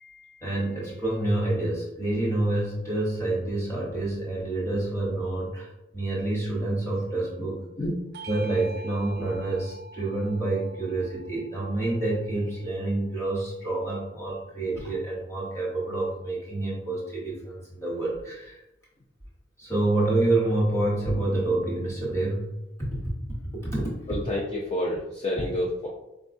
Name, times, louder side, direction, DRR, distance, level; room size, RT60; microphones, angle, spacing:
voice 1, 0.0-7.6 8.3-18.6 19.6-22.5 22.8-23.0 23.6-23.9, right 2 dB, 15° left, -5 dB, 1.0 m, -28 dB
Bell / Doorbell, 8.1-13.0, right 2 dB, 55° right, 0.3 m, -46 dB
voice 2, 24.1-25.9, left 1 dB, 30° left, -4 dB, 0.4 m, -29 dB
4.3 x 2.3 x 2.5 m, 0.90 s
head